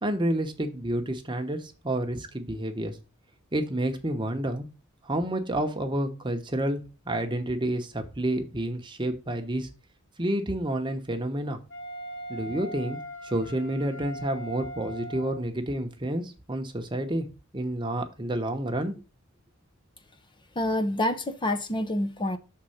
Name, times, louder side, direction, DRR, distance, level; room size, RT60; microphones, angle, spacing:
voice 1, 0.0-3.0 3.5-4.7 5.0-9.7 10.2-11.6 12.3-17.3 17.5-18.9, right 1 dB, 25° right, 5 dB, 1.0 m, -29 dB
Wind instrument woodwind instrument, 11.7-15.5, right 1 dB, 60° left, 2.9 m, -40 dB
voice 2, 20.6-22.4, left 1 dB, 25° left, 8 dB, 0.6 m, -27 dB
6.5 x 4.1 x 5.7 m, 0.32 s
head